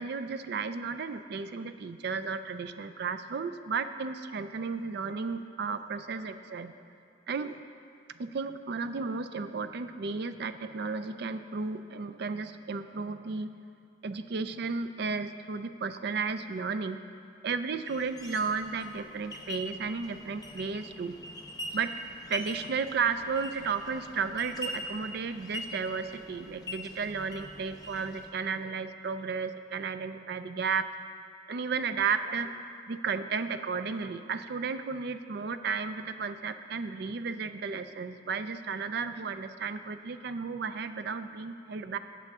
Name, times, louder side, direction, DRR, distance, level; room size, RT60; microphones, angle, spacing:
voice 1, 0.0-6.7 7.3-7.6 8.2-13.5 14.0-17.0 17.4-21.2 21.7-21.9 22.3-30.9 31.5-32.5 32.9-42.0, right 5 dB, 55° right, 10 dB, 0.4 m, -33 dB
sound 1, 17.9-28.3, left 1 dB, 20° left, 0.8 m, -43 dB
14.0 x 8.3 x 3.6 m, 2.4 s
head